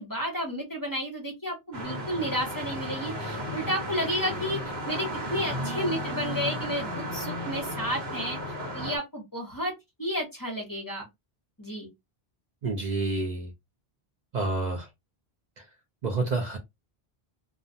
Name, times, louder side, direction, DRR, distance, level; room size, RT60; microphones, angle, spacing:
voice 1, 0.0-8.4 8.7-9.7 10.0-11.0 11.6-11.9, equal, 25° left, 0.7 m, -32 dB
sound 1, 1.7-9.0, equal, 75° right, 1.2 m, -34 dB
voice 2, 12.6-13.5 14.3-14.9 16.0-16.6, right 3 dB, 55° right, 0.6 m, -28 dB
2.4 x 2.1 x 2.6 m
omnidirectional pair, 1.0 m